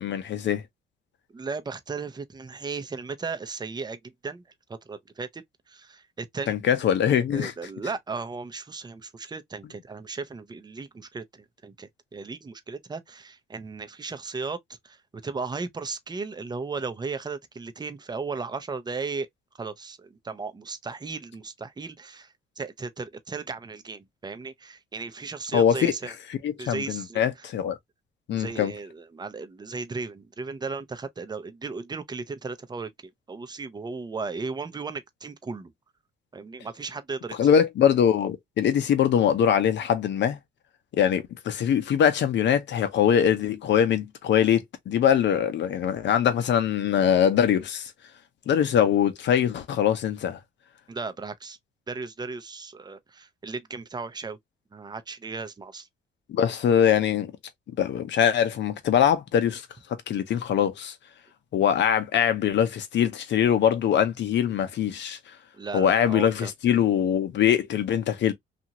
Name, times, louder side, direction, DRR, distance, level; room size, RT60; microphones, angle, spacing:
voice 1, 0.0-0.6 6.5-7.5 25.5-25.9 26.4-27.8 28.3-28.7 37.4-40.4 40.9-47.9 48.5-50.4 56.3-57.3 57.8-59.7 60.1-60.9 61.5-65.2 65.7-68.3, left 9 dB, 65° left, 0.8 m, -22 dB
voice 2, 1.3-4.4 4.9-6.6 7.3-14.6 14.8-15.0 15.2-19.3 19.6-26.1 26.6-27.2 28.3-32.9 33.3-35.7 36.3-37.4 50.9-51.6 51.9-54.4 54.7-55.9 65.5-66.5, right 4 dB, 20° right, 0.6 m, -36 dB
2.8 x 2.5 x 2.8 m
cardioid pair, 90°, 20 cm